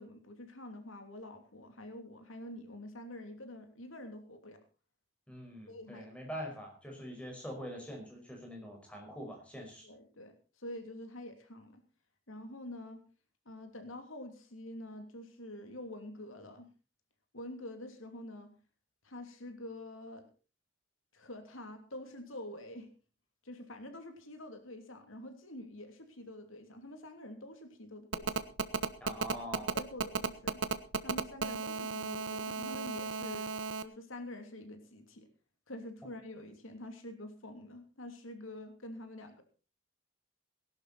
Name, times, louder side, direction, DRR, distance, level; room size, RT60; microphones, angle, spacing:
voice 1, 0.0-4.6 5.7-6.1 9.8-11.8 12.3-13.0 13.4-16.7 17.3-18.5 19.0-20.3 21.1-22.9 23.4-28.5 29.6-30.6 31.0-33.5 33.8-35.3 35.7-39.4, left 1 dB, 90° left, 6 dB, 2.9 m, -47 dB
voice 2, 5.3-9.9 29.0-29.7, equal, 5° left, 1 dB, 5.2 m, -44 dB
Telephone, 28.1-33.8, right 4 dB, 75° right, 1.1 m, -34 dB
18.5 x 11.5 x 4.2 m, 0.33 s
head